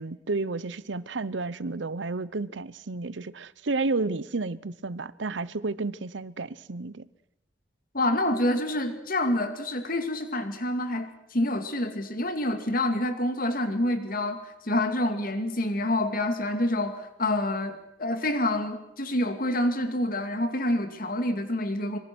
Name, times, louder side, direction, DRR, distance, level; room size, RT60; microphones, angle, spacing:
voice 1, 0.0-7.0, right 3 dB, 80° right, 0.8 m, -31 dB
voice 2, 7.9-22.0, left 1 dB, 50° left, 2.5 m, -27 dB
26.0 x 23.0 x 6.2 m
head